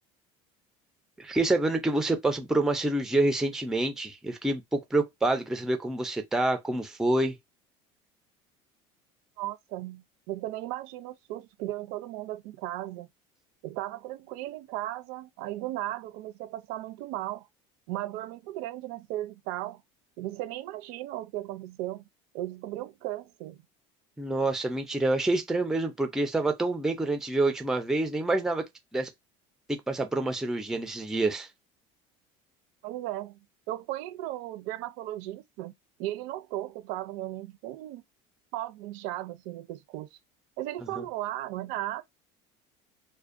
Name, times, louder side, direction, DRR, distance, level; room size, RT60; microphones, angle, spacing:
voice 1, 1.2-7.4 24.2-28.6 28.9-29.1 29.7-31.5 41.0-41.1, right 2 dB, 5° right, 0.4 m, -27 dB
voice 2, 9.4-13.1 13.6-17.5 17.9-19.8 20.2-22.0 22.3-23.6 32.8-33.4 33.7-35.7 36.0-38.0 38.5-40.2 40.6-42.0, right 15 dB, 70° right, 0.4 m, -36 dB
2.4 x 2.1 x 2.4 m
cardioid pair, 140°, 15 cm